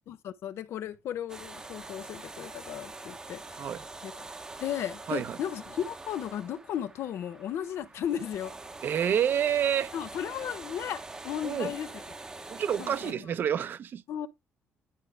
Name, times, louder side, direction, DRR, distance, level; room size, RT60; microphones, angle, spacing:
voice 1, 0.1-3.7 4.0-4.3 4.6-8.5 9.9-11.9 12.8-13.2 14.1-14.3, left 10 dB, 60° left, 0.7 m, -35 dB
sound 1, 1.3-13.1, right 3 dB, 15° right, 0.9 m, -44 dB
voice 2, 8.8-9.9 11.4-11.7 12.5-14.0, right 9 dB, 45° right, 0.7 m, -28 dB
11.0 x 4.8 x 3.3 m
cardioid pair, 175°, 5 cm